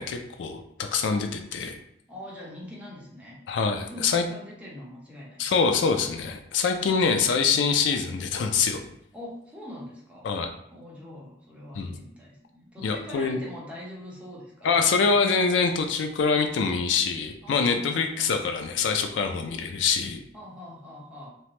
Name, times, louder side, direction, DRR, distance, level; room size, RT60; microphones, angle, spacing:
voice 1, 0.0-1.8 3.5-4.2 5.4-8.8 10.2-10.5 11.7-12.0 12.8-13.4 14.6-20.2, left 5 dB, 90° left, 5 dB, 0.3 m, -25 dB
voice 2, 2.1-3.4 3.8-5.5 9.1-10.3 10.7-15.1 17.4-18.4 20.3-21.3, left 1 dB, 5° right, -5 dB, 0.8 m, -43 dB
2.9 x 2.1 x 3.0 m, 0.74 s
head